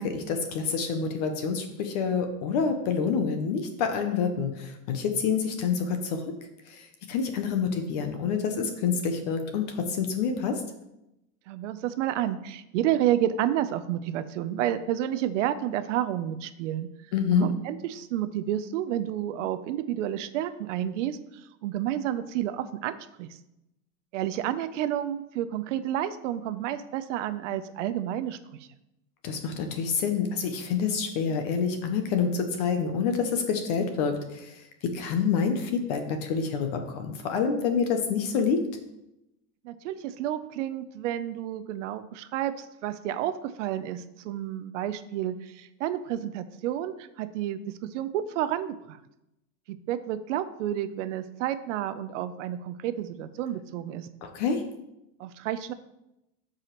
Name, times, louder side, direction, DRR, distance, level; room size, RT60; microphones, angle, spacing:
voice 1, 0.0-6.2 6.7-10.6 17.1-17.5 29.2-38.6 54.2-54.6, left 6 dB, 30° left, 6 dB, 0.4 m, -27 dB
voice 2, 11.5-16.9 17.3-21.2 21.6-23.3 24.1-28.4 39.6-49.0 49.7-54.1 55.2-55.7, right 11 dB, 55° right, 12 dB, 0.5 m, -30 dB
12.5 x 4.8 x 3.0 m, 0.88 s
supercardioid pair, 170°, 45 cm